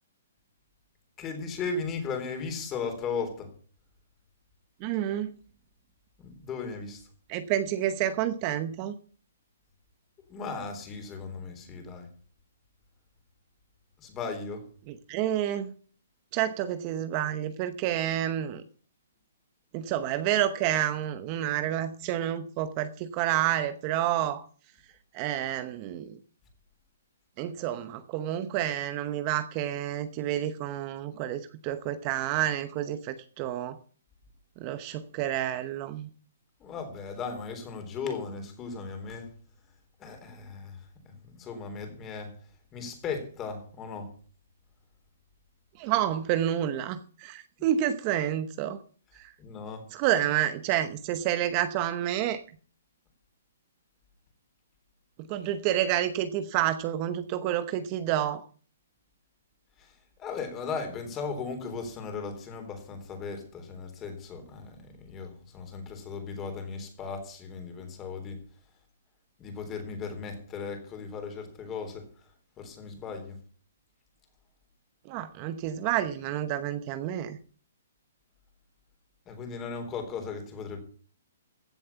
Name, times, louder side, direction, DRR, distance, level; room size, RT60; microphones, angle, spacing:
voice 1, 1.2-3.5 6.2-7.1 10.2-12.1 14.0-14.7 36.6-39.3 40.0-42.4 42.7-44.1 49.4-49.9 50.2-50.3 59.8-68.4 69.4-73.4 79.3-80.8, left 5 dB, 20° left, 3.6 m, -37 dB
voice 2, 4.8-5.3 7.3-9.0 14.9-15.7 16.3-18.6 19.7-24.4 25.1-26.2 27.4-33.8 34.6-36.1 45.8-48.8 49.1-49.3 49.9-52.4 55.3-58.4 75.0-77.4, right 11 dB, 30° right, 0.9 m, -29 dB
15.5 x 7.4 x 7.1 m
hypercardioid pair, 155°, 0 cm